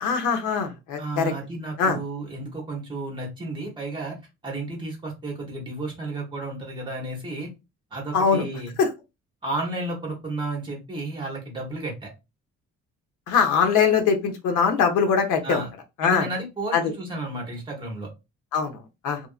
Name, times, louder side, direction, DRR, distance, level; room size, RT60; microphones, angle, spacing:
voice 1, 0.0-1.3 1.8-2.0 8.1-8.4 8.8-8.9 13.3-15.6 16.0-16.3 16.7-16.9 18.5-19.2, left 6 dB, 80° left, 5 dB, 0.8 m, -22 dB
voice 2, 1.0-4.1 4.4-7.5 7.9-8.8 9.4-12.1 15.4-15.7 16.0-18.1, right 2 dB, 15° right, 0 dB, 0.9 m, -32 dB
2.9 x 2.5 x 2.4 m, 0.24 s
cardioid pair, 180°, 30 cm